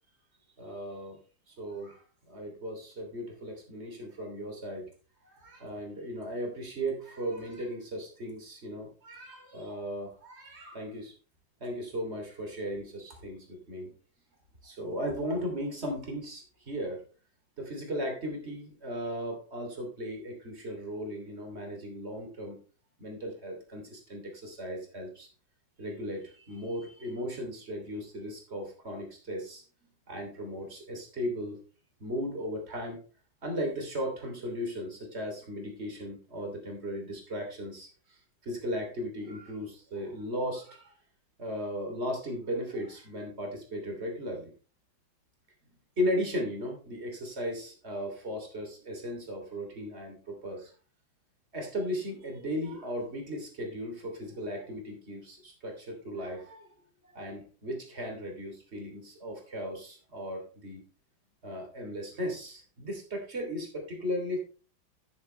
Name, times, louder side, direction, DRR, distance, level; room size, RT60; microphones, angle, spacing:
voice 1, 0.6-1.2 1.5-4.9 5.2-11.1 11.6-13.9 14.6-17.0 17.6-22.6 23.0-25.3 25.8-29.6 30.1-31.6 32.0-33.0 33.4-38.2 38.4-40.9 41.4-44.5 46.0-50.7 51.5-56.7 57.0-60.8 61.4-64.4, equal, 35° right, 2 dB, 3.3 m, -36 dB
11.0 x 9.9 x 3.3 m, 0.37 s
omnidirectional pair, 2.1 m